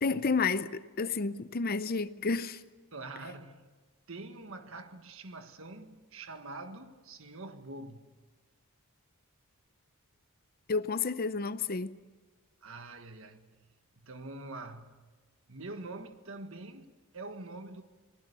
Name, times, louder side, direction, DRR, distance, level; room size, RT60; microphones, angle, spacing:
voice 1, 0.0-2.6 10.7-12.0, left 4 dB, 40° left, 0.6 m, -31 dB
voice 2, 2.9-3.7 4.1-8.1 12.6-13.7 14.0-15.1 15.5-17.8, right 2 dB, 60° right, 1.6 m, -45 dB
27.5 x 19.5 x 6.9 m
head